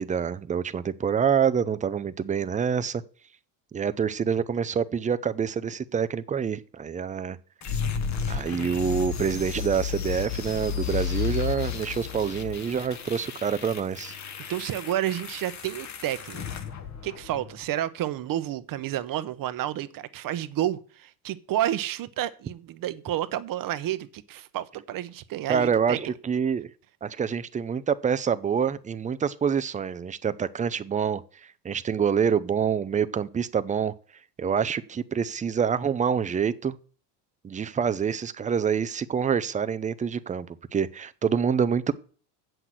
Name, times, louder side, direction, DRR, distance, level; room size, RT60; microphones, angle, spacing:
voice 1, 0.0-3.0 3.7-7.4 8.3-14.1 25.5-26.7 27.0-33.9 34.4-36.8 37.4-40.5 40.7-41.9, right 7 dB, 15° right, 0.5 m, -26 dB
sound 1, 7.6-17.6, left 8 dB, 35° left, 1.4 m, -33 dB
voice 2, 14.5-16.4 17.0-26.1, right 12 dB, 45° right, 0.8 m, -30 dB
7.9 x 6.0 x 7.6 m
supercardioid pair, 100°, 48 cm